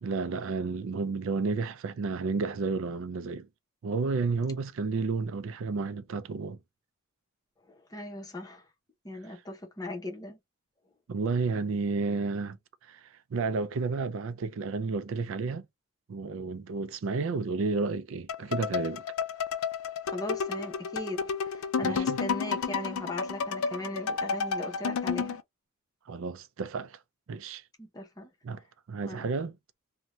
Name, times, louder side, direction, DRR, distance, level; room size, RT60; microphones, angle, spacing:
voice 1, 0.0-3.5 3.8-6.6 11.1-12.6 12.9-15.6 16.1-19.0 21.8-22.2 26.1-27.0 27.3-27.6 28.4-29.6, right 4 dB, 65° right, 0.4 m, -31 dB
voice 2, 7.7-8.6 9.0-10.4 20.0-25.4 27.8-28.3 29.1-29.3, left 1 dB, 20° left, 0.8 m, -38 dB
sound 1, 18.3-25.4, left 6 dB, 75° left, 0.4 m, -31 dB
2.7 x 2.2 x 3.0 m
head